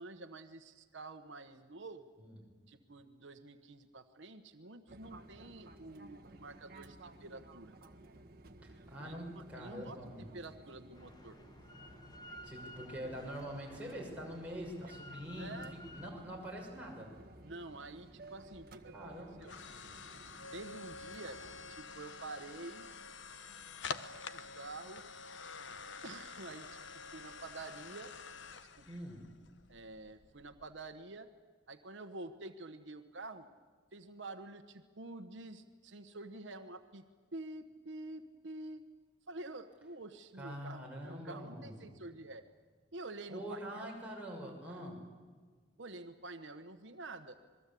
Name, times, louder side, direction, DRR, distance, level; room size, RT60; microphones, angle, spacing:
voice 1, 0.0-2.1 2.7-7.8 9.0-11.4 15.4-15.7 17.4-19.1 19.4-19.6 20.5-22.9 24.3-25.0 26.0-26.8 27.1-28.1 28.8-28.9 29.7-31.3 31.7-33.5 33.9-37.0 37.3-38.9 39.3-42.4 42.9-43.9 44.7-44.8 45.8-47.4, right 2 dB, 75° right, 8 dB, 1.2 m, -48 dB
Fixed-wing aircraft airplane, 4.9-21.7, right 2 dB, 50° right, 1.6 m, -56 dB
voice 2, 8.6-10.3 12.4-15.6 15.9-17.1 18.9-19.4 28.9-29.2 40.4-41.9 43.3-45.0, equal, 10° right, -3 dB, 6.2 m, -44 dB
Drill, 10.9-16.1, left 1 dB, 20° left, 1.0 m, -53 dB
Hydraulic log splitter, 18.0-31.0, left 5 dB, 80° left, 1.1 m, -48 dB
27.0 x 21.0 x 8.5 m, 1.5 s
head